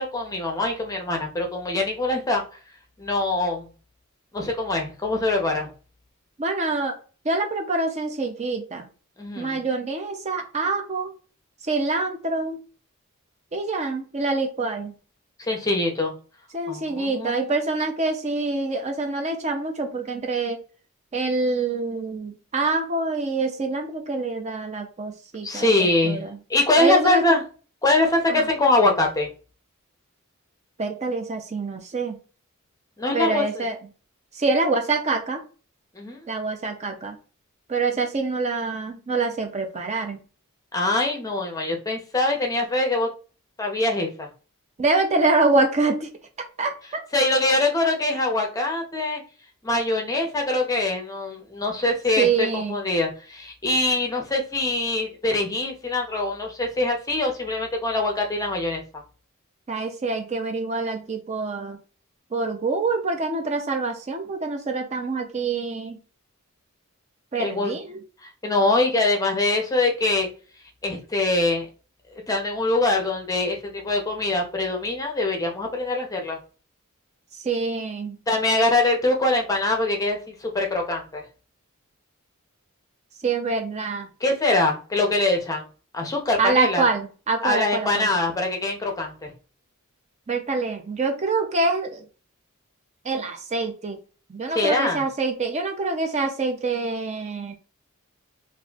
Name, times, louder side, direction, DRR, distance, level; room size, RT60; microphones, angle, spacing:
voice 1, 0.0-2.4 3.0-3.7 4.3-5.7 9.2-9.6 15.4-16.1 16.7-17.6 25.4-26.2 26.5-27.4 27.8-29.3 33.0-33.6 36.0-36.2 40.7-43.1 43.6-44.3 47.1-49.2 49.6-58.8 67.4-67.8 68.2-70.3 70.8-71.7 72.3-76.4 78.3-81.2 84.2-85.6 85.9-86.8 87.4-89.3 94.5-95.0, left 2 dB, 15° left, 1 dB, 0.6 m, -23 dB
voice 2, 6.4-7.0 7.2-8.8 9.4-11.1 11.7-12.6 13.5-14.9 16.5-20.6 21.1-26.4 26.8-27.2 28.3-28.5 30.8-32.2 33.1-33.8 34.3-35.4 36.3-37.2 37.7-40.2 44.8-46.1 46.6-46.7 52.2-52.8 59.7-61.8 62.3-66.0 67.3-68.0 77.4-78.2 83.2-84.1 86.4-88.1 90.3-92.0 93.0-94.0 94.3-97.5, right 3 dB, 30° right, 5 dB, 0.5 m, -25 dB
4.1 x 2.5 x 2.4 m, 0.36 s
head